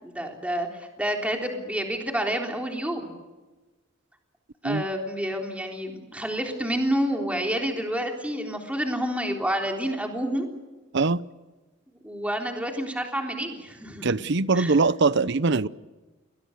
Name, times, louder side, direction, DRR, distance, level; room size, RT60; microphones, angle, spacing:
voice 1, 0.0-3.1 4.6-10.5 12.0-14.2 14.6-14.8, equal, 5° right, 2 dB, 3.7 m, -29 dB
voice 2, 14.0-15.7, right 3 dB, 60° right, 17 dB, 0.8 m, -22 dB
29.5 x 22.0 x 6.6 m, 1.2 s
head